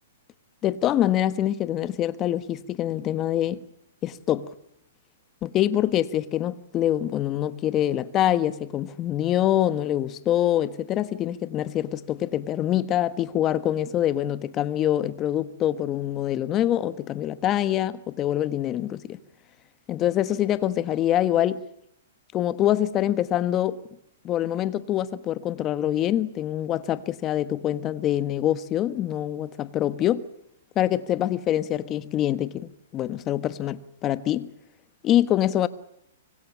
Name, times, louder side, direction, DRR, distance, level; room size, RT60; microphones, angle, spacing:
voice 1, 0.6-3.6 4.0-4.5 5.4-19.2 19.9-21.6 22.3-23.8 24.2-30.2 30.7-34.5 35.0-35.7, left 12 dB, 25° left, 1.2 m, -25 dB
25.0 x 24.0 x 7.3 m
hypercardioid pair, 150°, 0 cm